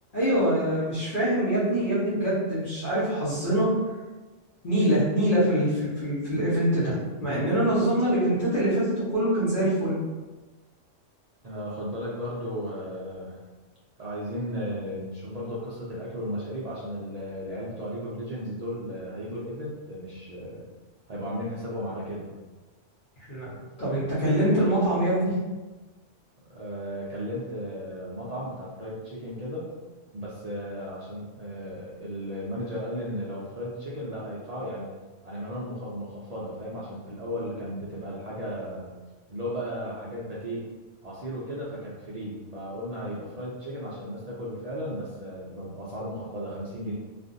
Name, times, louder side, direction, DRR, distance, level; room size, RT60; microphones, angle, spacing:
voice 1, 0.1-3.7 4.6-10.0 23.3-25.3, right 1 dB, 45° left, -12 dB, 1.0 m, -24 dB
voice 2, 11.4-13.4 14.0-20.7 21.1-22.3 26.5-29.7 30.1-34.9 35.2-38.9 39.3-40.7 41.0-46.9, equal, 70° right, -7 dB, 0.3 m, -35 dB
2.5 x 2.4 x 2.5 m, 1.2 s
omnidirectional pair, 1.2 m